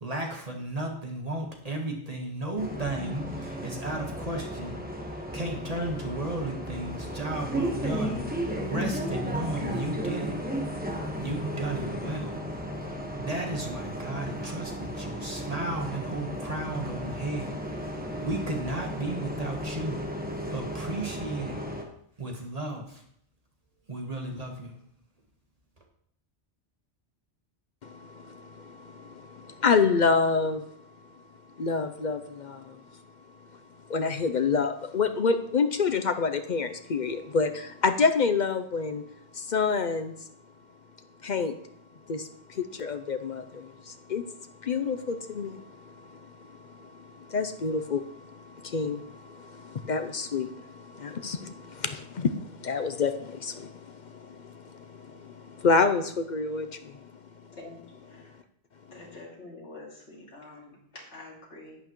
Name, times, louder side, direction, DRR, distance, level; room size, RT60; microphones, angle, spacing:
voice 1, 0.0-10.4 11.2-12.4 13.2-17.5 18.2-20.0 20.5-21.6 22.2-23.0 23.9-24.7, right 2 dB, 35° right, 1 dB, 1.4 m, -34 dB
Bus, 2.6-21.8, equal, 10° right, 1.2 m, -34 dB
voice 2, 27.8-30.6 31.6-32.8 33.9-39.0 39.3-40.3 41.2-41.5 42.1-44.3 44.6-57.1, left 5 dB, 50° left, 8 dB, 0.6 m, -28 dB
voice 3, 57.5-58.3 58.9-61.8, left 2 dB, 85° left, -3 dB, 2.8 m, -46 dB
11.0 x 8.8 x 3.1 m, 0.67 s
omnidirectional pair, 1.2 m